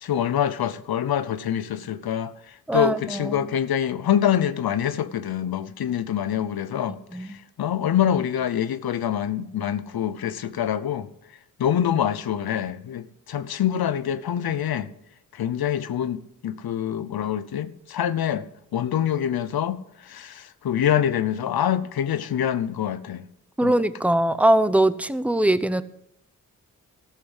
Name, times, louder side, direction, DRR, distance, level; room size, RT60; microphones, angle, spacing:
voice 1, 0.0-7.3 7.6-11.1 11.6-14.9 15.3-18.4 18.7-23.3 23.6-23.7, left 10 dB, 80° left, 0.8 m, -25 dB
voice 2, 2.7-3.4 7.1-7.4 23.6-25.8, right 1 dB, 5° right, 0.8 m, -21 dB
14.0 x 7.5 x 7.9 m
cardioid pair, 45°, 36 cm